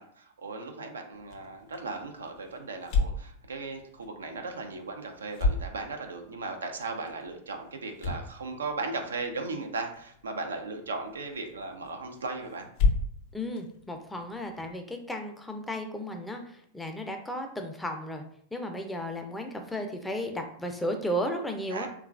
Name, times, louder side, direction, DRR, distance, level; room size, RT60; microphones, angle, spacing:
voice 1, 0.0-12.7 21.7-21.9, right 3 dB, 85° right, 5 dB, 0.4 m, -37 dB
sound 1, 1.1-14.7, left 3 dB, 55° left, 0.5 m, -35 dB
voice 2, 13.3-18.2 18.5-21.9, equal, 5° left, 4 dB, 0.5 m, -34 dB
3.0 x 2.3 x 2.3 m, 0.64 s
hypercardioid pair, 100°, 0 cm